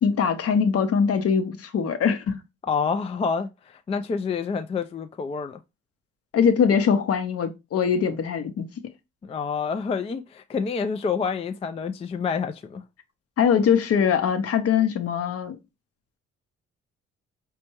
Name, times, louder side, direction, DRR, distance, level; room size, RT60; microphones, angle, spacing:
voice 1, 0.0-2.4 6.3-8.7 13.4-15.6, left 7 dB, 50° left, 0.7 m, -22 dB
voice 2, 2.7-5.6 9.2-12.8, left 5 dB, 20° left, 0.3 m, -28 dB
4.3 x 2.2 x 2.9 m
hypercardioid pair, 50°, 30 cm